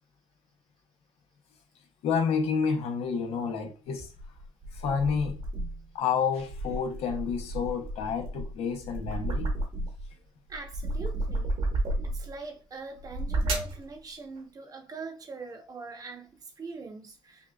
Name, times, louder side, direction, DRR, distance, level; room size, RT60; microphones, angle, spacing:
voice 1, 2.0-4.1 4.8-5.4 5.9-9.5, left 6 dB, 85° left, 0.8 m, -29 dB
sound 1, 4.0-5.9 6.4-10.1 10.5-12.4 13.0-13.8, right 2 dB, 70° right, 1.3 m, -32 dB
voice 2, 10.5-11.5 12.0-17.5, right 3 dB, 35° right, 0.9 m, -42 dB
5.5 x 2.4 x 2.2 m
cardioid pair, 115°, 10 cm